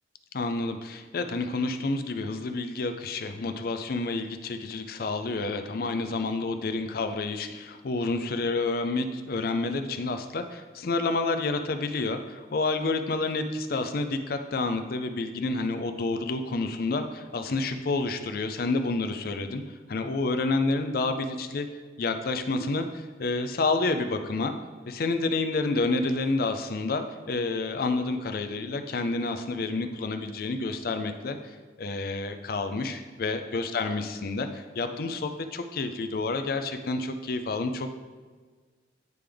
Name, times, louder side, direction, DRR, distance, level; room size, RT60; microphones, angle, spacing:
voice 1, 0.3-19.6 19.9-21.7 22.0-24.5 24.9-37.9, left 3 dB, 55° left, 8 dB, 0.5 m, -29 dB
9.2 x 3.4 x 3.4 m, 1.5 s
head